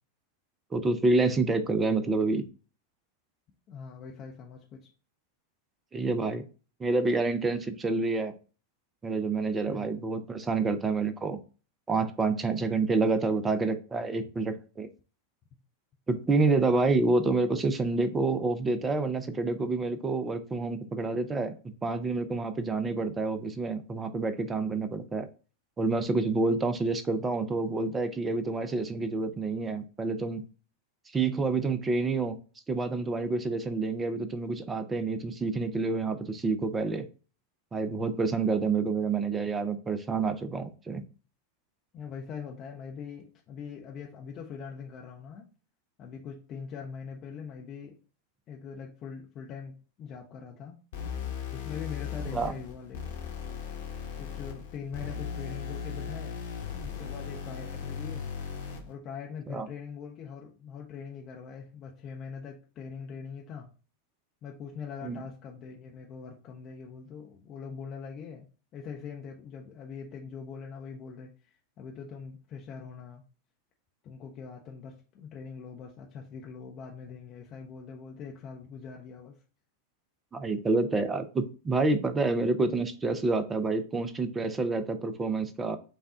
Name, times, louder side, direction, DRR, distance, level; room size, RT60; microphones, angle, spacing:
voice 1, 0.7-2.5 5.9-6.4 6.8-8.3 9.0-11.4 11.9-14.9 16.1-21.5 21.8-25.3 25.8-30.4 31.1-32.4 32.7-37.1 37.7-41.0 52.3-52.5 59.5-59.7 65.0-65.2 80.3-85.8, right 3 dB, 15° right, 10 dB, 0.6 m, -28 dB
voice 2, 3.7-4.9 9.7-10.0 41.9-45.5 46.0-48.0 48.5-50.8 51.5-53.0 54.2-56.4 56.8-58.3 58.9-63.7 64.4-68.5 68.7-73.2 74.0-79.3, left 6 dB, 35° left, 0 dB, 0.7 m, -42 dB
sound 1, 50.9-58.9, left 7 dB, 60° left, 1.1 m, -37 dB
5.5 x 2.3 x 3.7 m, 0.36 s
figure-of-eight pair, 90°, 0 cm